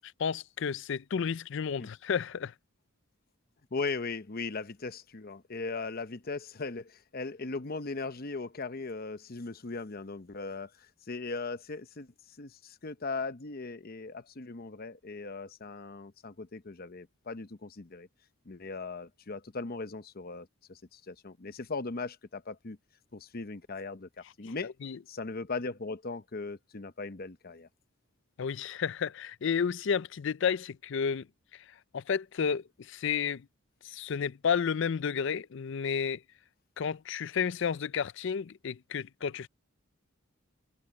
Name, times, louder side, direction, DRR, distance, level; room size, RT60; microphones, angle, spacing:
voice 1, 0.2-2.5 24.4-25.0 28.4-31.3 31.5-31.6 31.9-33.5 33.8-36.2 36.8-39.5, left 6 dB, 60° left, 0.4 m, -31 dB
voice 2, 3.7-18.1 18.5-22.8 23.1-24.7 25.1-27.7, left 3 dB, 45° left, 0.8 m, -38 dB
head